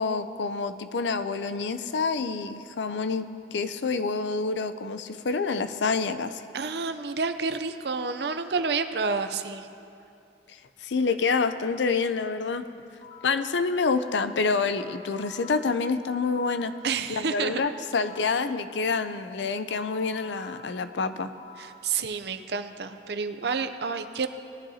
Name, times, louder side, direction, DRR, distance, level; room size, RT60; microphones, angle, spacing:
voice 1, 0.0-6.4 10.8-12.6 13.2-16.7 17.1-21.3, left 4 dB, 85° left, 11 dB, 0.5 m, -27 dB
voice 2, 6.5-9.7 16.8-17.6 21.6-24.3, right 5 dB, 65° right, 9 dB, 0.6 m, -29 dB
sound 1, 12.6-13.5 14.3-16.8 17.6-18.5 19.3-21.8, left 3 dB, 30° left, 1.6 m, -49 dB
20.0 x 11.0 x 2.8 m, 2.7 s
head